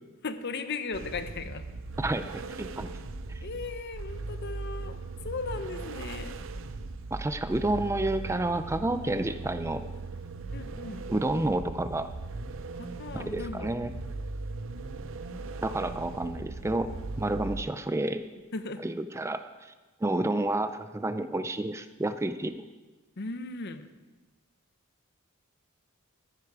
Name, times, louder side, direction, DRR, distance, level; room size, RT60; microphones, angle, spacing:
voice 1, 0.2-1.6 3.4-6.4 10.5-11.1 12.8-13.8 18.5-18.8 23.2-23.9, left 4 dB, 55° left, 11 dB, 0.7 m, -37 dB
Maserati Exhaust all, 0.9-17.6, right 3 dB, 65° right, 0.6 m, -39 dB
voice 2, 2.0-2.9 3.3-3.4 7.1-9.8 11.1-12.1 13.1-13.9 15.6-16.9 17.2-18.3 18.8-19.7 20.0-22.6, right 2 dB, 15° right, 10 dB, 0.4 m, -30 dB
14.5 x 9.9 x 4.7 m, 1.2 s
head